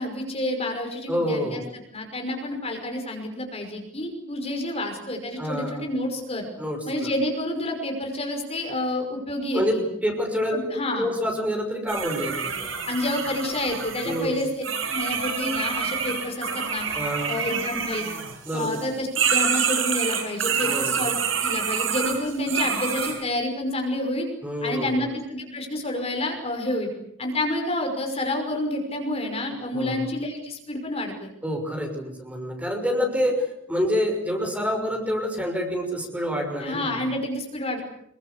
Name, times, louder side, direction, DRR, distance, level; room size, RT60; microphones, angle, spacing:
voice 1, 0.0-1.6 1.9-6.5 6.9-9.8 10.5-11.1 12.9-14.5 14.9-16.9 17.3-18.1 18.5-24.3 24.6-26.9 27.2-31.3 36.6-37.8, left 1 dB, 30° left, 3 dB, 5.7 m, -29 dB
voice 2, 1.1-1.6 5.4-5.8 6.6-7.1 9.5-9.8 10.0-10.6 10.9-12.7 14.0-14.4 16.9-17.4 18.4-18.8 20.6-20.9 24.4-25.0 29.7-30.0 31.4-37.0, equal, 5° right, 3 dB, 5.9 m, -27 dB
sound 1, 11.9-18.9 19.2-23.2, right 7 dB, 85° right, 7.8 m, -27 dB
27.0 x 23.0 x 8.4 m, 0.72 s
head